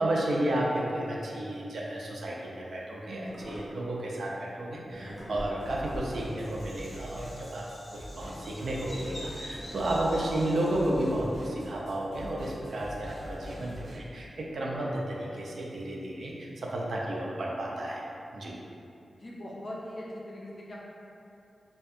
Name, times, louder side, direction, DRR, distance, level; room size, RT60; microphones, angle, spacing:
voice 1, 0.0-7.7 7.9-18.0 18.3-18.6, right 1 dB, 65° right, -3 dB, 0.4 m, -32 dB
sound 1, 2.7-7.8 8.2-15.0, equal, 20° right, 0.6 m, -47 dB
Bird vocalization bird call bird song, 4.9-11.2, equal, 10° left, 1.0 m, -45 dB
sound 2, 5.6-14.0, equal, 50° right, 1.2 m, -44 dB
voice 2, 19.2-20.8, left 1 dB, 40° left, -5 dB, 0.4 m, -40 dB
2.6 x 2.2 x 2.4 m, 2.7 s
wide cardioid pair, 145°, 0 cm